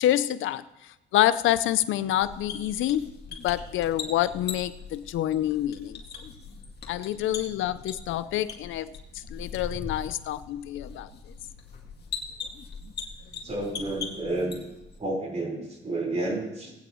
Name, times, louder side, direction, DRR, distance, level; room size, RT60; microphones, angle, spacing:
voice 1, 0.0-6.0 6.9-8.9 9.1-11.1, left 13 dB, 80° left, 15 dB, 0.6 m, -27 dB
sound 1, 2.2-15.0, left 5 dB, 55° left, 2.1 m, -41 dB
voice 2, 13.4-14.6 15.0-16.7, right 2 dB, 35° right, -1 dB, 4.5 m, -30 dB
18.5 x 9.3 x 3.1 m, 0.99 s
cardioid pair, 90°, 20 cm